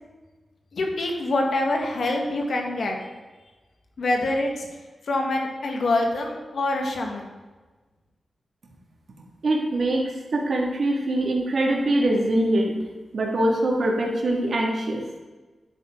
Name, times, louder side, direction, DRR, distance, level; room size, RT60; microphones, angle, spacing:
voice 1, 0.7-3.0 4.0-4.7 5.1-7.3, left 2 dB, 70° left, 2 dB, 1.8 m, -25 dB
voice 2, 9.4-12.8 13.1-15.0, right 1 dB, 65° right, 0 dB, 2.2 m, -23 dB
10.5 x 8.4 x 3.9 m, 1.2 s
wide cardioid pair, 80°, 0 cm